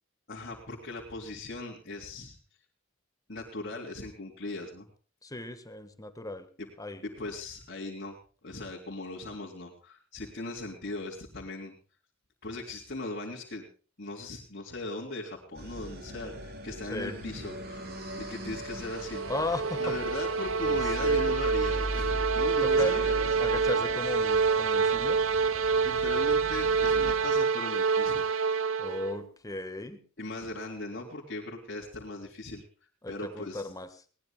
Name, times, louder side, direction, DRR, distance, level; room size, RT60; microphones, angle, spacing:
voice 1, 0.3-2.4 3.3-4.9 6.6-6.7 7.0-8.1 8.4-11.8 12.4-13.7 14.0-17.9 18.2-19.2 19.8-23.2 25.8-28.3 30.2-32.6 33.1-33.7, left 2 dB, 55° left, -3 dB, 3.4 m, -39 dB
voice 2, 5.2-6.5 6.8-7.0 16.9-17.2 19.3-19.9 20.6-21.3 22.6-22.9 23.4-25.2 28.8-30.0 33.0-33.9, left 2 dB, 20° left, 10 dB, 1.5 m, -36 dB
sound 1, 15.5-27.1, right 1 dB, 50° right, 4.3 m, -39 dB
sound 2, 18.7-29.2, right 5 dB, 75° right, 1.0 m, -27 dB
21.0 x 19.0 x 2.3 m, 0.38 s
head